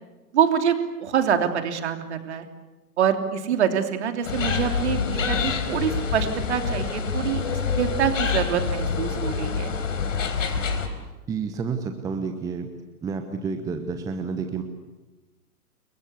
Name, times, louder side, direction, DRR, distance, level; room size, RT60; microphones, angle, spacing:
voice 1, 0.3-2.5 3.0-7.4 7.8-9.8, right 8 dB, 45° right, 6 dB, 3.2 m, -25 dB
sound 1, 4.2-10.9, left 6 dB, 55° left, 4.3 m, -26 dB
voice 2, 11.3-12.7 13.0-14.6, right 5 dB, 5° right, 6 dB, 1.0 m, -30 dB
28.5 x 23.0 x 8.3 m, 1.1 s
figure-of-eight pair, 120°, 46 cm